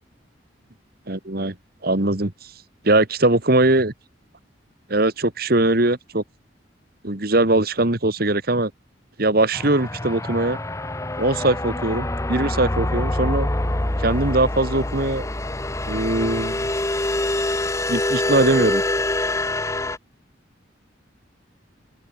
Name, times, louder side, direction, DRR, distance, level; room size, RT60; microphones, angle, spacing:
voice 1, 1.1-1.5 1.8-2.3 2.8-3.9 4.9-6.2 7.0-8.7 9.2-10.6 11.2-13.5 14.0-15.3 15.9-16.7 17.9-18.8, right 2 dB, 50° right, 1.9 m, -21 dB
sound 1, 9.5-20.0, left 1 dB, 15° left, 1.0 m, -25 dB
open air
head